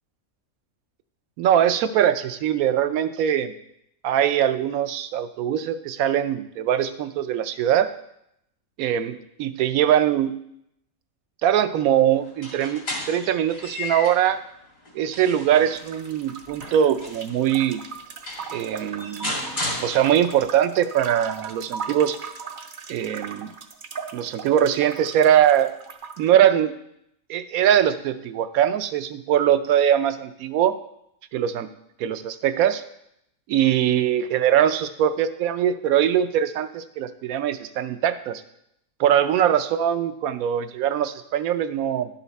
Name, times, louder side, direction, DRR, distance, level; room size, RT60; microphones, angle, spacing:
voice 1, 1.4-3.5 4.0-7.9 8.8-10.3 11.4-14.4 14.9-17.8 18.5-19.4 19.8-22.2 22.9-23.5 24.1-25.7 26.2-26.7 27.3-30.7 31.3-31.7 32.0-32.8 33.5-38.4 39.0-42.1, right 10 dB, 80° right, 11 dB, 1.0 m, -22 dB
sound 1, 12.3-14.3 14.8-17.4 17.9-18.0 18.3-20.5, left 1 dB, 80° left, 2.9 m, -34 dB
sound 2, 15.7-26.3, right 6 dB, 55° right, 0.6 m, -38 dB
11.0 x 5.7 x 4.1 m, 0.77 s
omnidirectional pair, 1.5 m